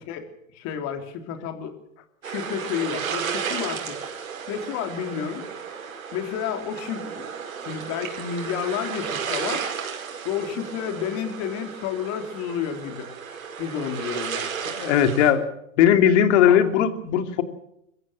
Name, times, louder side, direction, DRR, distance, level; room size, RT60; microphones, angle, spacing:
voice 1, 0.1-1.7 2.2-4.0 4.5-5.5 6.1-7.3 7.7-9.6 10.2-13.1 13.6-14.5 16.4-16.6, left 8 dB, 40° left, 6 dB, 3.6 m, -31 dB
sound 1, 2.2-15.3, right 7 dB, 85° right, 5.3 m, -33 dB
voice 2, 14.8-15.4 15.8-17.4, left 9 dB, 60° left, 8 dB, 2.8 m, -18 dB
24.5 x 15.0 x 7.4 m, 0.77 s
hypercardioid pair, 130°, 40 cm